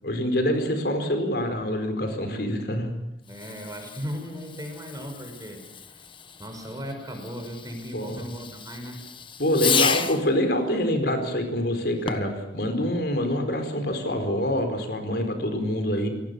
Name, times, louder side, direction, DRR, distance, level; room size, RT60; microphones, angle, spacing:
voice 1, 0.0-2.9 7.9-8.2 9.4-16.1, equal, 60° left, 7 dB, 4.7 m, -26 dB
Fireworks, 3.2-10.3 12.0-12.4, left 6 dB, 30° left, 1.3 m, -32 dB
voice 2, 3.3-6.0 6.4-9.0, equal, 20° right, 4 dB, 5.6 m, -37 dB
29.0 x 19.0 x 7.0 m, 0.88 s
head